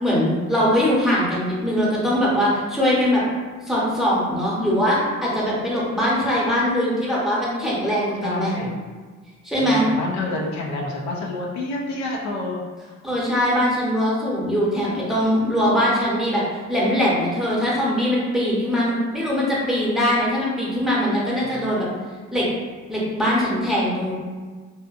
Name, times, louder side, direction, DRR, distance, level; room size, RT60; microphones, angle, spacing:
voice 1, 0.0-3.2 3.7-8.5 9.4-9.9 13.0-21.9 22.3-22.5 22.9-24.1, equal, ahead, -7 dB, 0.9 m, -21 dB
voice 2, 8.2-8.8 9.6-12.6 21.5-21.8, left 2 dB, 70° left, -2 dB, 0.6 m, -28 dB
2.7 x 2.4 x 2.4 m, 1.4 s
cardioid pair, 90°, 30 cm